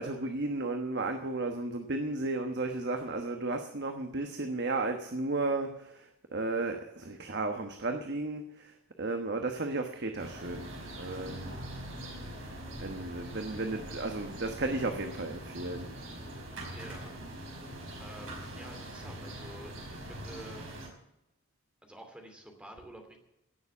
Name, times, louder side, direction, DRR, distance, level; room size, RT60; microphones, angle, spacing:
voice 1, 0.0-10.7 11.0-11.6 12.8-15.9, right 2 dB, 50° right, 5 dB, 1.2 m, -34 dB
sound 1, 10.2-20.9, right 1 dB, 65° right, 4.8 m, -43 dB
voice 2, 16.7-17.2 18.0-20.7 21.8-23.2, right 1 dB, 5° right, 3 dB, 2.6 m, -49 dB
17.0 x 7.2 x 8.4 m, 0.87 s
head